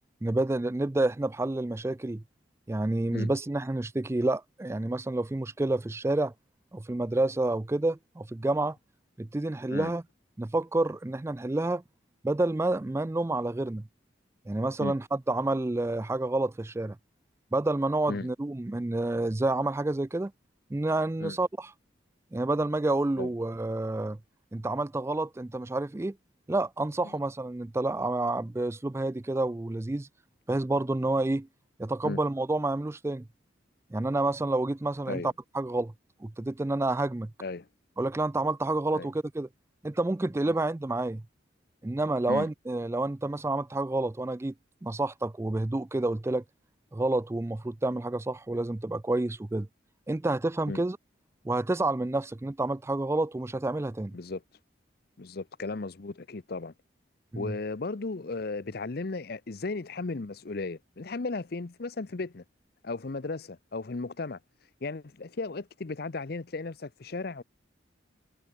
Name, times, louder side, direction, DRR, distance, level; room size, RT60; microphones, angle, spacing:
voice 1, 0.2-2.2 2.7-6.3 6.7-8.8 9.2-10.0 10.4-11.8 12.2-13.8 14.5-17.0 17.5-20.3 20.7-21.7 22.3-24.2 24.5-26.1 26.5-30.1 30.5-31.5 31.8-33.3 33.9-35.2 35.5-35.9 36.2-37.3 38.0-39.5 39.8-41.2 41.8-44.5 44.8-46.4 46.9-49.7 50.1-51.0 51.4-54.2 57.3-57.5, right 2 dB, 15° right, 0.3 m, -29 dB
voice 2, 55.2-56.7 57.3-62.4 62.8-64.4 64.8-67.4, left 3 dB, 55° left, 0.7 m, -35 dB
head